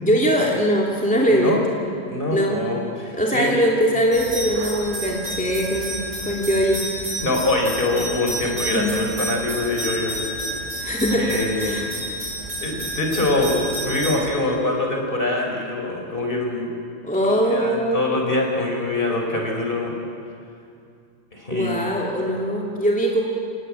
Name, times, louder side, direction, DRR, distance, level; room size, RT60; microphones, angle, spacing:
voice 1, 0.0-1.5 2.3-2.6 3.1-6.8 8.4-8.9 10.8-11.8 17.0-18.0 21.5-23.2, equal, 5° left, -2 dB, 2.7 m, -21 dB
voice 2, 1.3-1.6 2.1-3.5 7.2-10.3 11.1-11.9 12.6-16.7 17.2-19.9 21.3-21.9, left 2 dB, 45° left, 0 dB, 4.8 m, -24 dB
sound 1, 4.1-14.2, right 1 dB, 85° right, 5.4 m, -30 dB
29.0 x 19.0 x 8.8 m, 2.4 s
omnidirectional pair, 1.2 m